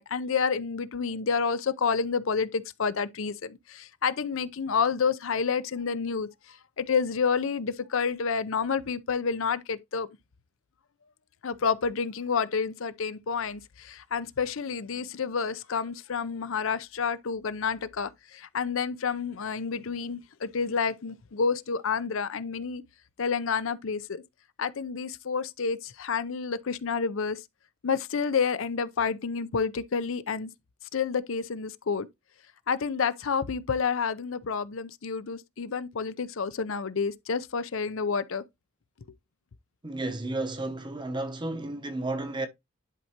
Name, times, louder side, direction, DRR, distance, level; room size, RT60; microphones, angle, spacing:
voice 1, 0.0-6.3 6.8-10.1 11.4-22.8 23.2-24.2 24.6-27.4 27.8-30.5 30.9-32.1 32.7-38.4, left 5 dB, 70° left, 0.6 m, -29 dB
voice 2, 39.8-42.5, right 2 dB, 20° right, 0.8 m, -32 dB
10.5 x 4.6 x 2.8 m
head